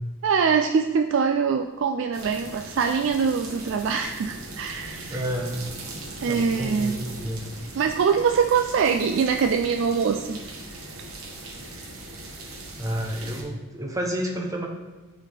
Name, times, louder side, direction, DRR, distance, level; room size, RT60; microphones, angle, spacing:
voice 1, 0.2-5.2 6.2-7.0 7.8-10.4, right 6 dB, 55° right, 5 dB, 0.3 m, -23 dB
sound 1, 2.1-13.4, right 2 dB, 75° right, 1.1 m, -39 dB
voice 2, 5.1-5.6 6.3-7.5 12.8-14.7, equal, 15° right, 1 dB, 0.7 m, -30 dB
9.2 x 4.1 x 3.4 m, 1.2 s
head